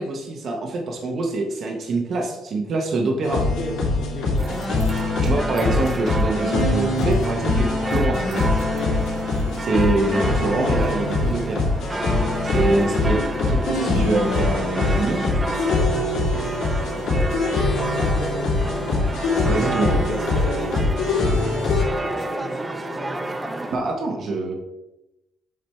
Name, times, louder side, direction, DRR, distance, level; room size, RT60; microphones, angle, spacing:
voice 1, 0.0-3.4 5.2-8.4 9.6-11.6 12.5-13.2 13.7-15.2 19.5-20.0 23.7-24.5, right 2 dB, 45° right, 1 dB, 0.9 m, -24 dB
sound 1, 3.2-21.8, left 3 dB, 85° left, 2.3 m, -23 dB
voice 2, 3.6-4.6 8.7-9.6 12.0-12.3 12.9-13.5 14.9-18.9 19.3-23.4, left 2 dB, 35° left, -6 dB, 1.9 m, -36 dB
sound 2, 4.4-23.8, right 2 dB, 10° right, 0.4 m, -30 dB
7.5 x 3.3 x 4.3 m, 0.93 s
cardioid pair, 170°, 0 cm